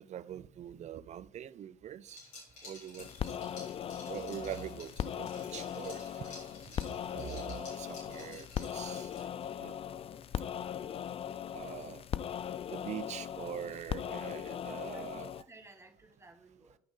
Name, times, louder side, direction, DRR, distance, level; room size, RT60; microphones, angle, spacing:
voice 1, 0.0-2.2 2.6-3.4 4.0-6.8 7.1-9.3 9.6-9.8 11.5-12.1 12.7-15.3, right 10 dB, 40° right, 0.5 m, -44 dB
Liquid, 2.1-9.5, left 3 dB, 75° left, 4.0 m, -52 dB
sound 1, 3.0-15.4, left 9 dB, 30° left, 0.4 m, -39 dB
voice 2, 14.6-16.8, right 2 dB, 15° right, 1.6 m, -56 dB
10.0 x 6.0 x 3.6 m
hypercardioid pair, 55°, 19 cm